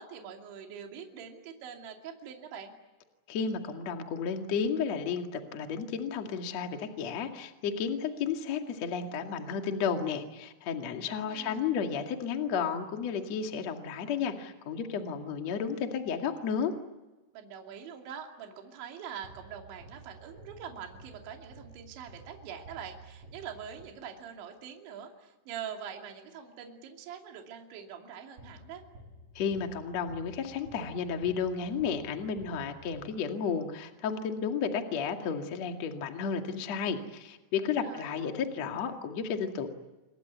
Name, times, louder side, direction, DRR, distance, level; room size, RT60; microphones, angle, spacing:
voice 1, 0.0-2.7 11.0-11.6 17.3-28.8 37.8-38.2, right 8 dB, 65° right, 3 dB, 4.9 m, -44 dB
voice 2, 3.3-16.7 29.3-39.7, left 6 dB, 45° left, 4 dB, 2.5 m, -32 dB
sound 1, 19.2-24.3 28.4-33.6, right 2 dB, 40° right, 3.8 m, -52 dB
28.5 x 22.5 x 8.3 m, 1.1 s
omnidirectional pair, 5.7 m